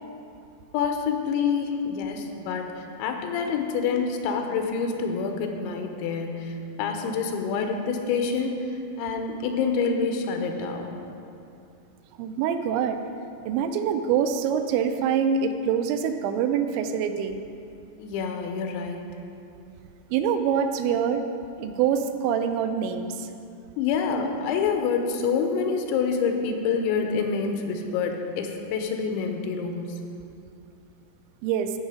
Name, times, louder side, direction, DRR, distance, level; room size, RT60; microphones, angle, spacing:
voice 1, 0.7-11.0 18.0-19.0 23.8-30.0, left 5 dB, 85° left, 4 dB, 3.1 m, -27 dB
voice 2, 12.2-13.0 13.5-17.4 20.1-21.2 21.6-23.3 31.4-31.7, right 7 dB, 90° right, 8 dB, 2.9 m, -25 dB
15.0 x 5.6 x 4.9 m, 2.6 s
omnidirectional pair, 5.1 m